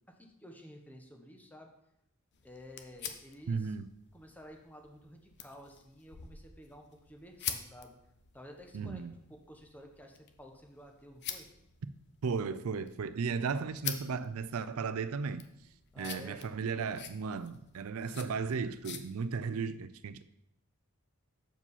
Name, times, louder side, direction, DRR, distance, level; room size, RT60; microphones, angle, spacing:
voice 1, 0.1-1.7 2.4-3.7 4.1-7.9 8.3-9.0 9.3-11.5 15.9-16.9, equal, 5° left, 1.0 m, -52 dB
sound 1, 2.3-19.0, left 9 dB, 50° left, 0.7 m, -47 dB
voice 2, 3.5-3.9 8.7-9.1 12.2-15.4 16.0-20.2, right 5 dB, 75° right, 0.4 m, -35 dB
8.1 x 4.9 x 5.5 m
head